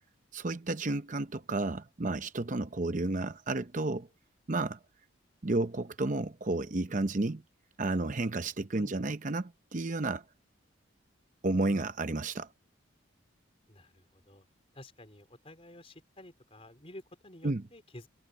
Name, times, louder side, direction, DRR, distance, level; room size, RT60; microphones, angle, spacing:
voice 1, 0.3-4.1 4.5-4.8 5.4-7.4 7.8-10.2 11.4-12.5 17.4-17.6, right 2 dB, 40° right, 0.7 m, -31 dB
voice 2, 8.8-9.1 13.7-14.4 14.7-18.1, left 1 dB, 30° left, 4.3 m, -51 dB
head